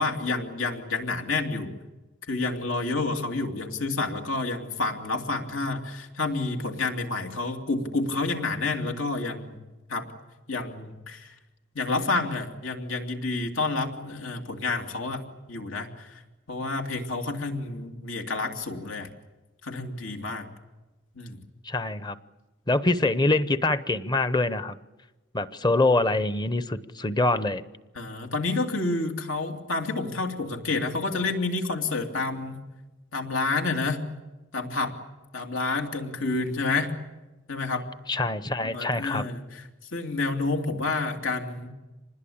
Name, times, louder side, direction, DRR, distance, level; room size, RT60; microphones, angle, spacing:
voice 1, 0.0-1.7 2.3-9.6 9.9-10.1 10.5-11.3 11.7-15.2 15.5-16.2 16.5-19.1 19.6-20.5 21.1-21.4 27.9-32.6 33.1-34.0 34.5-35.0 35.3-36.9 37.5-37.9 38.6-39.6 39.9-41.7, left 3 dB, 85° left, 4 dB, 2.8 m, -29 dB
voice 2, 21.6-22.2 22.7-24.8 25.3-27.6 38.1-39.2, left 2 dB, 20° left, 14 dB, 0.8 m, -24 dB
26.0 x 20.5 x 8.7 m, 1.1 s
head